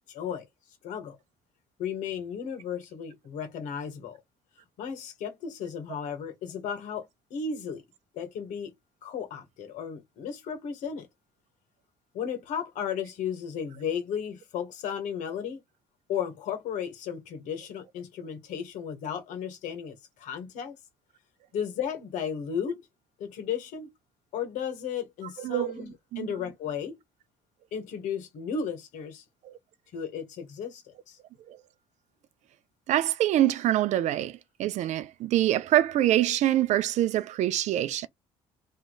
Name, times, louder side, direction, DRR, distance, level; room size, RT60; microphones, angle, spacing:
voice 1, 0.1-0.5 0.8-1.2 1.8-4.2 4.8-7.8 8.1-8.7 9.0-11.1 12.1-15.6 16.1-20.8 21.5-22.8 23.2-23.9 24.3-27.0 27.7-29.2 29.9-31.2, left 7 dB, 70° left, 1.7 m, -34 dB
voice 2, 25.4-25.7 26.1-26.3 29.4-29.5 31.5-31.6 32.9-38.1, right 13 dB, 60° right, 0.6 m, -25 dB
3.3 x 3.0 x 4.0 m
hypercardioid pair, 60°, 13 cm